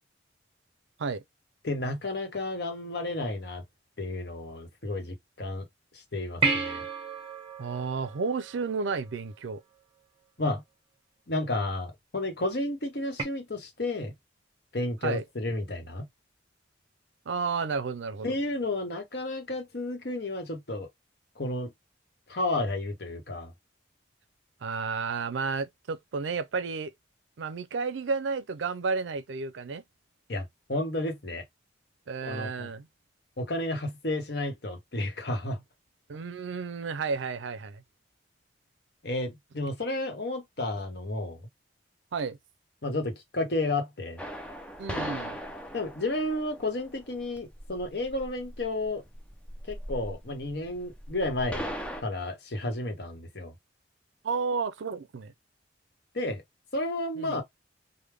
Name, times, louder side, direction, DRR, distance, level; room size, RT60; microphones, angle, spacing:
voice 1, 1.6-3.6 4.0-5.6 6.1-6.8 10.4-10.6 11.3-14.1 14.7-16.1 18.2-20.9 21.4-21.7 22.3-23.5 30.3-31.4 32.2-32.7 33.4-35.6 39.0-41.4 42.8-44.2 45.7-49.0 49.7-51.7 52.0-53.5 56.1-56.4 56.7-57.4, left 2 dB, 60° left, 1.0 m, -32 dB
sound 1, 6.4-9.1 13.2-13.3, right 4 dB, 30° right, 1.2 m, -31 dB
voice 2, 7.6-9.6 15.0-15.2 17.3-18.4 24.6-26.9 27.4-29.8 32.1-32.9 36.1-37.8 42.1-42.4 44.8-45.4 54.2-55.3 57.2-57.4, right 4 dB, 80° right, 0.5 m, -32 dB
sound 2, 44.2-52.0, equal, 5° left, 0.4 m, -39 dB
3.4 x 2.1 x 3.3 m
head